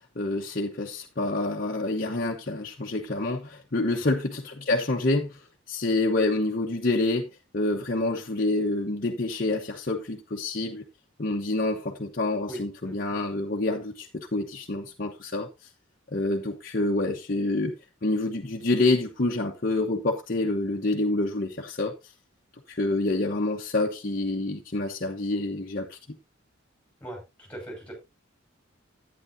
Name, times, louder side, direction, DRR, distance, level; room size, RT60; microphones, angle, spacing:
voice 1, 0.2-10.8 11.2-15.5 16.1-17.8 18.0-21.9 22.7-26.0, left 2 dB, 45° left, 1.0 m, -27 dB
voice 2, 12.5-13.2 27.0-27.9, right 1 dB, 5° left, 5.7 m, -41 dB
11.5 x 9.5 x 2.7 m
head